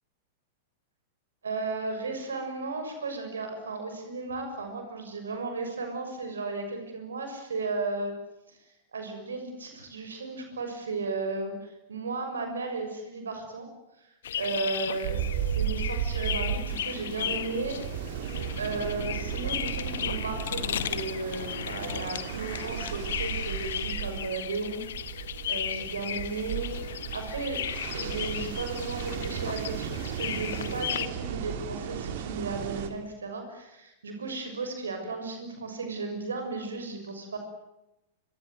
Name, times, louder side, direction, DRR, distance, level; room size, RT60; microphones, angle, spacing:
voice 1, 1.4-8.1 8.5-8.6 8.9-13.7 14.3-17.8 18.6-24.8 25.5-26.7 27.0-27.6 27.9-37.4, right 3 dB, 75° right, 6 dB, 6.4 m, -35 dB
sound 1, 14.2-31.1, left 10 dB, 60° left, 1.6 m, -36 dB
sound 2, 15.0-32.9, right 9 dB, 55° right, 3.3 m, -35 dB
27.5 x 24.5 x 7.9 m, 0.91 s
figure-of-eight pair, 95°, 0 cm